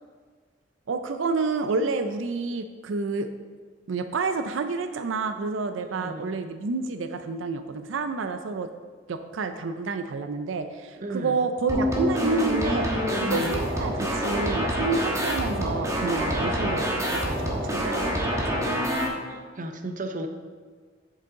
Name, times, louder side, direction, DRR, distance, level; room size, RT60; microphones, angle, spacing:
voice 1, 0.9-3.3 3.9-8.7 9.1-18.8, right 4 dB, 90° right, 9 dB, 0.5 m, -29 dB
voice 2, 5.8-6.3 11.0-11.4 16.9-17.0 19.3-20.3, right 2 dB, 45° right, 6 dB, 0.7 m, -35 dB
sound 1, 11.7-19.1, equal, 15° right, 1.3 m, -26 dB
8.2 x 7.5 x 3.7 m, 1.5 s
head